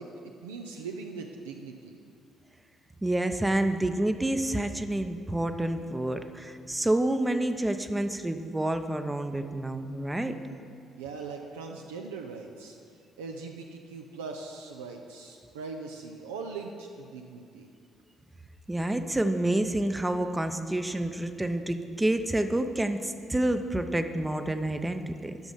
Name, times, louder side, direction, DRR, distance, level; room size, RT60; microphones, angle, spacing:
voice 1, 0.0-1.9 11.0-12.8 13.2-17.7, right 4 dB, 80° right, 2 dB, 0.5 m, -40 dB
voice 2, 3.0-10.4 18.7-25.4, right 1 dB, 15° right, 8 dB, 0.6 m, -28 dB
10.5 x 6.1 x 5.6 m, 2.3 s
figure-of-eight pair, 45°, 0 cm